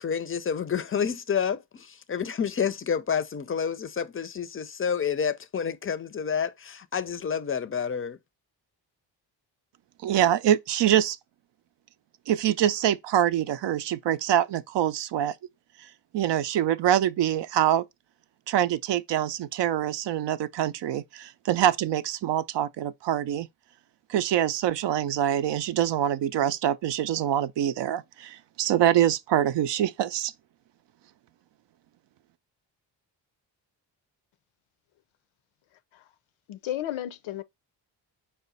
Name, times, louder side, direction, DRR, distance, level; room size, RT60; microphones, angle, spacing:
voice 1, 0.0-8.2, left 7 dB, 30° left, 0.5 m, -29 dB
voice 2, 10.0-11.2 12.3-15.3 16.1-17.8 18.5-23.5 24.1-30.3, right 11 dB, 65° right, 0.5 m, -25 dB
voice 3, 36.5-37.4, left 12 dB, 80° left, 0.6 m, -33 dB
4.8 x 2.2 x 4.0 m
supercardioid pair, 55°, 47 cm